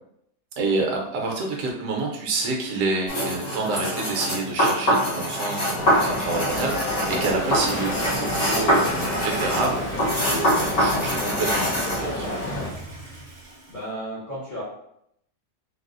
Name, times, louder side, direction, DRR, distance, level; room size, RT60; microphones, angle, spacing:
voice 1, 0.6-12.4, right 3 dB, 60° right, 0 dB, 1.0 m, -28 dB
sound 1, 3.1-12.0, equal, 65° left, 2.0 m, -24 dB
sound 2, 5.8-12.7, left 2 dB, 80° left, 1.5 m, -30 dB
Toilet flush, 7.0-13.8, right 2 dB, 30° right, 0.5 m, -39 dB
voice 2, 13.5-14.6, right 1 dB, 40° left, -9 dB, 0.7 m, -35 dB
3.9 x 2.0 x 2.5 m, 0.74 s
omnidirectional pair, 1.8 m